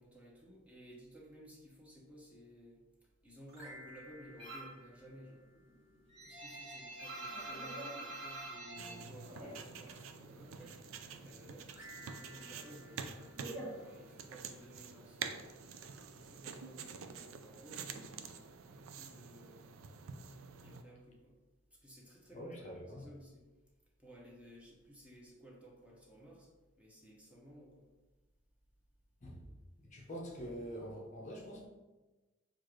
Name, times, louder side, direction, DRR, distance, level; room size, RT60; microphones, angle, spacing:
voice 1, 0.0-2.8 3.2-5.4 6.2-10.7 11.1-11.7 12.0-15.5 16.1-18.4 18.7-19.7 20.6-21.4 21.8-23.5 24.0-26.5 26.8-27.9, equal, 5° right, -4 dB, 0.8 m, -56 dB
sound 1, 3.4-5.9 11.7-14.3, equal, 55° right, 1.4 m, -56 dB
sound 2, 4.4-4.8 5.2-10.1 10.3-11.4 11.7-14.5, right 2 dB, 30° right, 1.3 m, -46 dB
sound 3, 8.8-20.8, right 6 dB, 85° right, 0.4 m, -48 dB
voice 2, 22.3-23.1 29.2-29.5 29.8-31.7, equal, 35° left, -1 dB, 0.6 m, -45 dB
6.4 x 2.5 x 3.0 m, 1.2 s
head